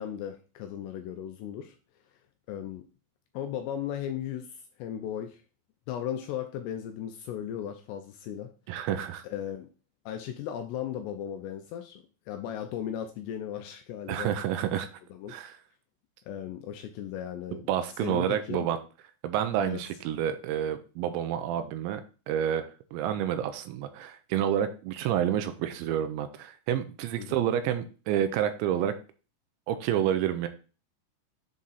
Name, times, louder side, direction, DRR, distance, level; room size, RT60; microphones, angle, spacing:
voice 1, 0.0-1.8 2.5-2.8 3.3-5.4 5.9-8.5 9.2-9.7 10.1-14.3 15.1-15.4 16.3-17.7 18.0-18.7 19.6-19.8 27.2-27.5, left 10 dB, 85° left, 6 dB, 2.4 m, -36 dB
voice 2, 8.7-9.2 14.1-14.9 15.3-15.6 17.5-18.8 19.2-22.0 22.3-28.9 29.7-30.5, right 10 dB, 80° right, 9 dB, 2.8 m, -29 dB
7.6 x 3.7 x 4.0 m, 0.35 s
omnidirectional pair, 5.4 m